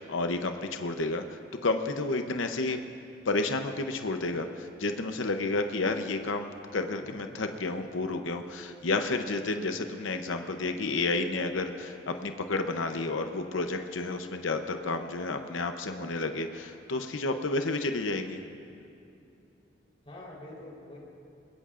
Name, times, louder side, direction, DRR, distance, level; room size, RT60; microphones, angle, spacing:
voice 1, 0.0-2.8 3.3-18.4, left 3 dB, 80° left, 6 dB, 0.8 m, -31 dB
voice 2, 7.0-7.4 20.0-21.0, left 1 dB, 30° left, -5 dB, 3.9 m, -46 dB
26.5 x 21.5 x 2.5 m, 2.7 s
head